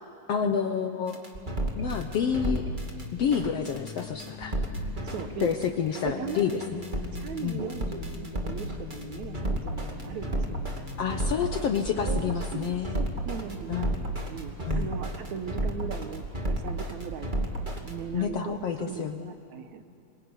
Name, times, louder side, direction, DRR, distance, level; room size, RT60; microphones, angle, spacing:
voice 1, 0.3-1.2 1.7-2.6 3.1-4.5 5.4-6.8 7.4-7.6 11.0-13.0 13.7-13.9 14.6-14.9 18.1-19.3, left 7 dB, 65° left, 6 dB, 1.6 m, -29 dB
sound 1, 1.1-18.0, right 1 dB, 15° right, 2.0 m, -31 dB
sound 2, 1.8-11.3, left 9 dB, 80° left, 2.8 m, -43 dB
voice 2, 5.0-5.6 6.0-6.6 7.2-10.6 12.0-12.7 13.0-13.9 14.3-17.3 17.8-19.8, right 7 dB, 65° right, 9 dB, 2.2 m, -38 dB
26.5 x 23.0 x 9.7 m, 2.7 s
omnidirectional pair, 3.9 m